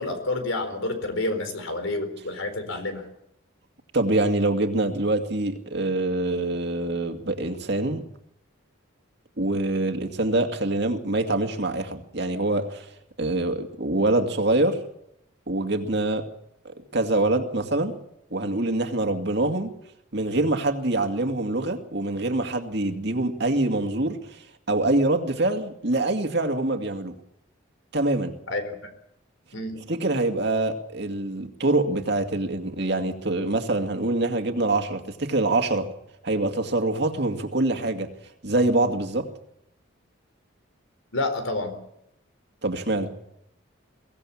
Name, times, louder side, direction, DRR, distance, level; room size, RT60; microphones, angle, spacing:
voice 1, 0.0-3.1 28.5-28.8 29.5-29.7 41.1-41.8, left 2 dB, 75° left, 8 dB, 4.2 m, -29 dB
voice 2, 3.9-8.0 9.4-12.9 13.2-14.8 15.5-16.3 16.6-17.9 18.3-19.7 20.1-24.4 24.7-27.1 27.9-28.3 29.9-35.9 36.2-38.1 38.4-39.3 42.6-43.1, right 2 dB, 55° right, 5 dB, 2.3 m, -25 dB
23.5 x 17.0 x 7.3 m, 0.78 s
head